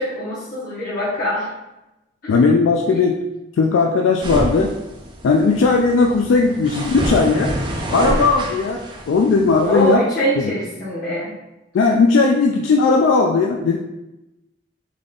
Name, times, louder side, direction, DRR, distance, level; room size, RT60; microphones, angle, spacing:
voice 1, 0.0-1.5 2.2-2.4 2.9-3.0 9.6-11.3, equal, 45° left, -9 dB, 0.9 m, -23 dB
voice 2, 2.3-3.2 3.6-4.8 5.2-7.5 7.9-10.0 10.4-10.5 11.7-13.8, left 4 dB, 75° left, 2 dB, 0.3 m, -17 dB
sound 1, 4.2-9.9, right 1 dB, 25° right, 0.4 m, -28 dB
3.7 x 3.5 x 2.4 m, 0.96 s
head